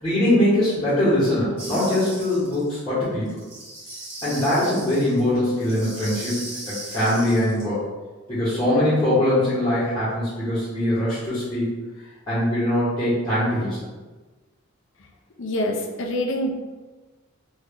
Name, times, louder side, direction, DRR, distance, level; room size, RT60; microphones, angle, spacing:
voice 1, 0.0-3.4 4.2-7.8 8.3-11.7 12.3-13.8, left 1 dB, 20° left, -14 dB, 1.4 m, -22 dB
sound 1, 1.6-2.7 3.3-7.6, right 2 dB, 30° right, 1.2 m, -38 dB
voice 2, 15.4-16.5, left 1 dB, 60° left, 1 dB, 0.6 m, -25 dB
3.1 x 2.6 x 3.7 m, 1.2 s
head